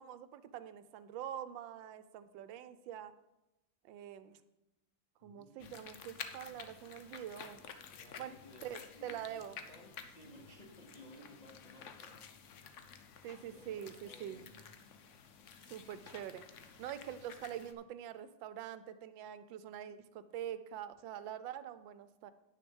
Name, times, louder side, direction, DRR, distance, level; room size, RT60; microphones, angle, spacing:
voice 1, 0.0-3.1 3.8-4.4 5.2-7.6 8.2-8.3 8.6-9.6 13.2-14.5 15.7-22.3, right 10 dB, 85° right, 13 dB, 1.3 m, -45 dB
voice 2, 5.2-5.8 7.9-12.4 13.4-14.8, left 1 dB, 30° left, 0 dB, 0.8 m, -58 dB
sound 1, 5.6-17.7, left 7 dB, 60° left, 0.7 m, -52 dB
9.3 x 6.4 x 5.3 m, 0.96 s
omnidirectional pair, 2.0 m